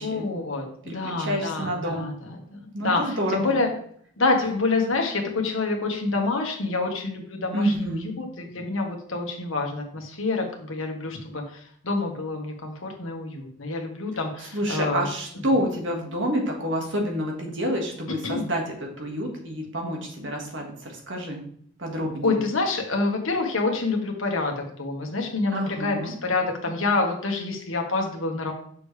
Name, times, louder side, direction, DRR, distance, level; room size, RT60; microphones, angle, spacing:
voice 1, 0.0-3.7 4.2-15.1 18.2-18.4 22.2-28.5, left 3 dB, 85° left, 2 dB, 1.4 m, -27 dB
voice 2, 0.9-2.1 2.7-3.6 7.5-8.1 14.4-21.4 21.8-22.4 25.5-26.1, equal, 65° right, 1 dB, 1.7 m, -28 dB
6.6 x 6.1 x 3.3 m, 0.62 s
head